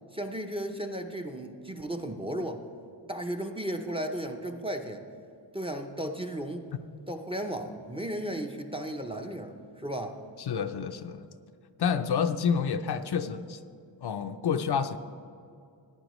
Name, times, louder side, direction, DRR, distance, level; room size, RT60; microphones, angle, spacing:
voice 1, 0.1-2.6 3.1-5.0 5.5-6.6 7.1-10.2, right 1 dB, 10° right, 5 dB, 0.5 m, -35 dB
voice 2, 10.4-11.2 11.8-13.6 14.0-15.0, left 6 dB, 60° left, 9 dB, 0.5 m, -29 dB
16.5 x 9.7 x 3.1 m, 2.4 s
wide cardioid pair, 140°, 46 cm